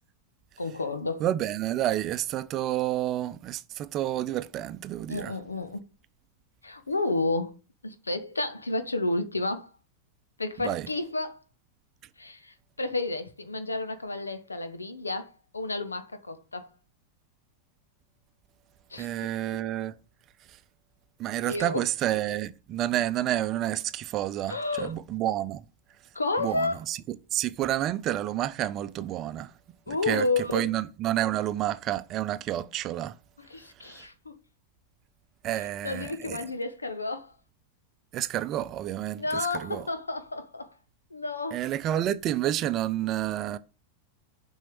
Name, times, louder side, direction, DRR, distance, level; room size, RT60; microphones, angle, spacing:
voice 1, 0.6-1.2 5.1-5.8 6.6-7.5 7.8-9.7 10.4-11.4 12.2-16.7 18.9-19.1 21.5-21.8 24.5-24.9 26.1-26.8 29.9-30.7 33.5-34.4 35.8-37.3 39.2-40.7 41.1-41.6, left 2 dB, 80° left, 1.2 m, -31 dB
voice 2, 1.2-5.3 10.6-10.9 19.0-20.0 20.5-20.6 21.2-25.6 26.4-29.5 29.9-30.3 30.5-33.2 33.8-34.1 35.4-36.5 38.1-39.9 41.5-43.6, right 13 dB, 35° right, 0.6 m, -29 dB
7.6 x 5.4 x 6.8 m
figure-of-eight pair, 90°, 0 cm